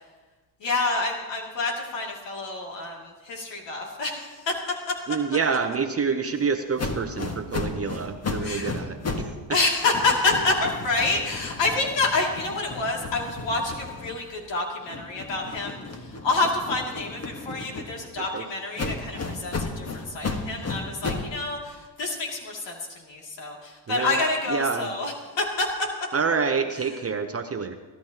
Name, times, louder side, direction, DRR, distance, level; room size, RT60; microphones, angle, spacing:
voice 1, 0.6-4.6 4.9-5.0 8.4-8.7 9.5-25.7, left 3 dB, 60° left, -1 dB, 2.7 m, -28 dB
voice 2, 5.1-9.3 18.2-18.4 23.9-24.2 24.5-24.9 26.1-27.7, right 5 dB, 30° right, 6 dB, 0.9 m, -27 dB
sound 1, 6.8-9.4 9.7-14.4 14.9-18.2 18.8-21.4, left 3 dB, 30° left, 1.6 m, -34 dB
24.0 x 12.0 x 2.9 m, 1.3 s
supercardioid pair, 75°, 49 cm